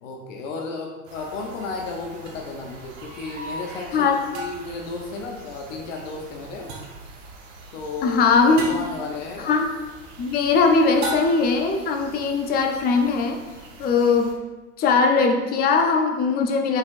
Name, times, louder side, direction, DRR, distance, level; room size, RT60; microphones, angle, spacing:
voice 1, 0.0-6.7 7.7-8.3 8.6-9.5, left 3 dB, 80° left, 1 dB, 0.8 m, -33 dB
sound 1, 1.1-14.3, right 2 dB, 90° right, 1.0 m, -44 dB
sound 2, 2.3-2.4 4.3-4.8 6.7-7.1 8.6-9.0 11.0-11.6, right 2 dB, 45° right, 1.1 m, -33 dB
voice 2, 8.0-8.6 9.4-9.7 10.2-13.4 13.8-14.4 14.8-16.8, left 4 dB, 25° left, 4 dB, 0.5 m, -20 dB
5.5 x 3.7 x 2.5 m, 1.2 s
supercardioid pair, 130°, 37 cm